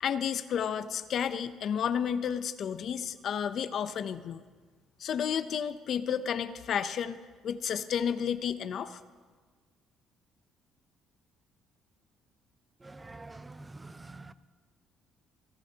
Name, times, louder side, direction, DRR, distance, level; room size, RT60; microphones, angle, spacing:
voice 1, 0.0-4.4 5.0-7.2 7.4-9.0, left 8 dB, 60° left, 0.6 m, -31 dB
voice 2, 12.8-14.3, right 2 dB, 20° right, 0.6 m, -46 dB
28.0 x 11.5 x 2.9 m
supercardioid pair, 80°, 0 cm